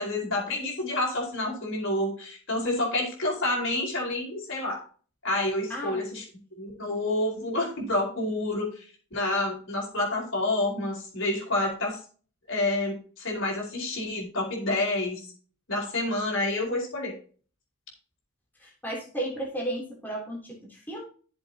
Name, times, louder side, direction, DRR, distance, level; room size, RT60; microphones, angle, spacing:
voice 1, 0.0-4.8 5.2-6.2 6.6-8.8 9.1-12.0 12.5-15.2 15.7-17.1, left 2 dB, 60° left, 0 dB, 4.6 m, -28 dB
voice 2, 5.7-6.0 18.6-21.0, right 1 dB, 10° left, -3 dB, 3.4 m, -34 dB
12.5 x 7.4 x 2.9 m, 0.39 s
head